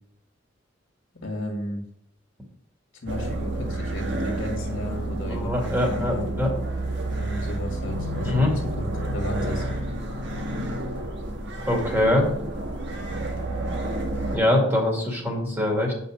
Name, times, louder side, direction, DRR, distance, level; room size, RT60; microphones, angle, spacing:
voice 1, 1.2-1.8 3.0-5.5 5.8-6.4 7.2-9.7, equal, 60° left, 0 dB, 1.9 m, -33 dB
sound 1, 3.1-14.4, right 1 dB, 60° right, 1.4 m, -30 dB
voice 2, 5.3-6.5 8.2-8.5 11.7-12.3 14.3-15.9, left 1 dB, 10° right, -1 dB, 2.1 m, -23 dB
8.6 x 5.5 x 5.1 m, 0.71 s
head